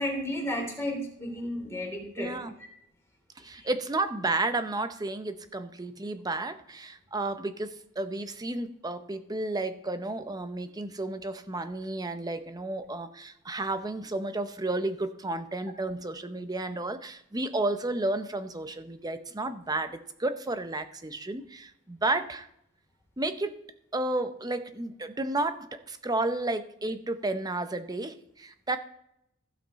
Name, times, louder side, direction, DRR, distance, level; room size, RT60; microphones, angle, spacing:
voice 1, 0.0-2.3 3.5-3.7, left 1 dB, 15° left, -1 dB, 3.2 m, -33 dB
voice 2, 2.2-2.5 3.4-22.5 23.2-23.6 23.9-28.8, right 2 dB, 20° right, 10 dB, 0.7 m, -32 dB
15.5 x 5.9 x 4.1 m, 0.75 s
head